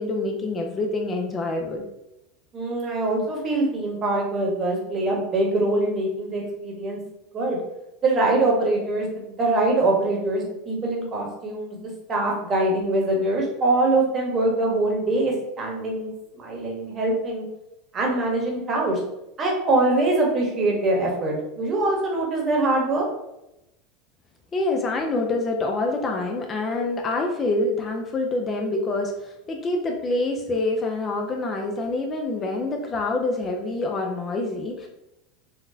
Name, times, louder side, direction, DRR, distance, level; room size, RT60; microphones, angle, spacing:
voice 1, 0.0-1.8 24.5-34.9, left 2 dB, 30° left, 2 dB, 0.5 m, -26 dB
voice 2, 2.5-7.0 7.3-7.6 8.0-9.1 9.4-11.8 12.1-17.4 17.9-19.0 19.4-23.1, right 2 dB, 30° right, -1 dB, 1.1 m, -23 dB
3.9 x 2.1 x 2.7 m, 0.88 s
hypercardioid pair, 105°, 0 cm